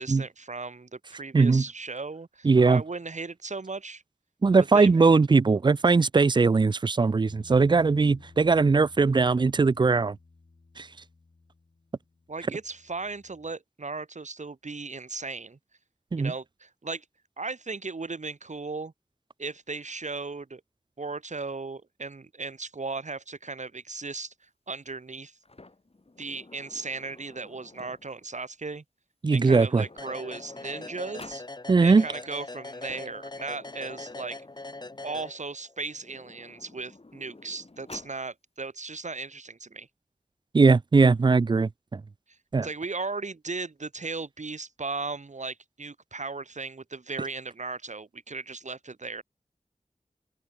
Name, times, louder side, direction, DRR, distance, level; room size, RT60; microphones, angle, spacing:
voice 1, 0.0-4.0 4.7-5.0 12.3-15.6 16.2-17.0 17.4-18.9 19.4-20.6 21.0-24.3 24.7-25.3 26.2-28.8 29.3-31.4 31.8-34.4 35.0-39.9 42.6-49.2, right 3 dB, 65° right, 1.8 m, -36 dB
voice 2, 1.3-1.6 2.4-2.8 4.4-10.2 10.8-10.9 16.1-16.3 29.2-29.8 31.7-32.0 40.5-42.0 42.5-42.7, right 4 dB, 35° right, 0.4 m, -20 dB
Bass guitar, 7.3-13.5, left 3 dB, 70° left, 2.8 m, -54 dB
Sliding door, 25.4-28.3 29.3-29.4 29.6-31.5 32.6-35.1 35.9-38.2, left 2 dB, 50° left, 3.6 m, -51 dB
sound 1, 30.0-35.8, left 2 dB, 35° left, 0.9 m, -41 dB
open air
wide cardioid pair, 55°, 13 cm